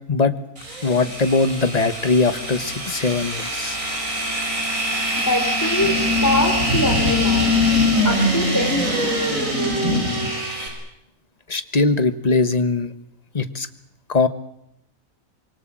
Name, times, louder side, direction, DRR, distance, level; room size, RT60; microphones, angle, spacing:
sound 1, 0.6-10.7, left 1 dB, 65° right, 6.7 m, -22 dB
voice 1, 0.8-3.8 11.5-12.9 13.3-13.7 14.1-14.3, left 3 dB, 30° left, 11 dB, 1.3 m, -20 dB
voice 2, 5.1-7.5 8.0-9.2, left 1 dB, 10° left, 2 dB, 3.8 m, -24 dB
25.5 x 24.0 x 7.6 m, 0.79 s
omnidirectional pair, 1.5 m